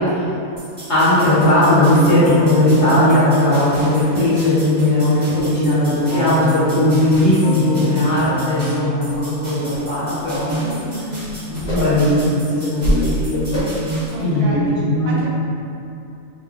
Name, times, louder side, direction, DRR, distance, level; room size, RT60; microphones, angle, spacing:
sound 1, 0.6-14.1, right 1 dB, 35° right, 1.0 m, -32 dB
voice 1, 0.9-10.8 11.4-15.2, left 1 dB, 40° left, -13 dB, 0.8 m, -17 dB
Keyboard (musical), 2.2-4.5 6.1-10.4, left 3 dB, 75° left, 0.4 m, -30 dB
sound 2, 9.1-9.2 9.7-9.8 10.2-10.4 10.8-12.1 12.6-13.1 13.5-13.9 14.3-14.4, right 1 dB, 55° left, 1.3 m, -25 dB
voice 2, 10.7-11.3 14.1-14.6 15.1-15.3, right 1 dB, 90° right, -5 dB, 1.1 m, -31 dB
3.0 x 2.4 x 2.4 m, 2.7 s
omnidirectional pair, 1.6 m